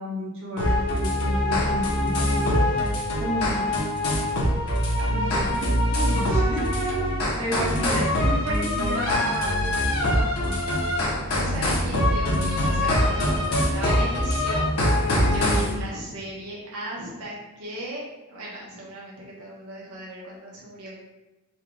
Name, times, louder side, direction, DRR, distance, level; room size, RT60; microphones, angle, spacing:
voice 1, 0.0-2.8 3.2-3.9 5.1-10.6, right 1 dB, 60° right, -6 dB, 1.0 m, -32 dB
sound 1, 0.6-15.7, left 1 dB, 70° left, 0.9 m, -23 dB
voice 2, 11.3-14.7 15.2-21.0, right 1 dB, 80° right, -5 dB, 1.0 m, -36 dB
4.3 x 2.4 x 3.4 m, 1.1 s
head